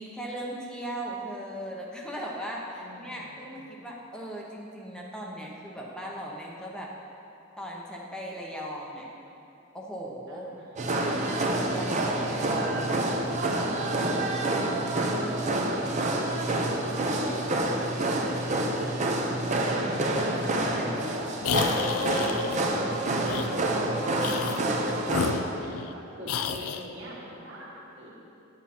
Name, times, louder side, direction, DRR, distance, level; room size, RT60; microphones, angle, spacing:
voice 1, 0.0-6.9 7.6-9.1 9.7-10.5 11.0-12.8 14.9-15.7 20.1-21.0, right 1 dB, 5° left, -3 dB, 0.8 m, -38 dB
voice 2, 2.8-3.6 10.3-10.9 15.4-16.4 16.7-19.2 20.6-28.2, equal, 60° right, -5 dB, 1.7 m, -44 dB
sound 1, 10.8-25.4, right 1 dB, 35° right, 0.7 m, -27 dB
sound 2, 21.4-22.6 23.2-23.5 24.2-24.7 25.1-25.9 26.3-26.8, left 6 dB, 90° left, 0.4 m, -31 dB
10.5 x 7.3 x 4.3 m, 2.8 s
head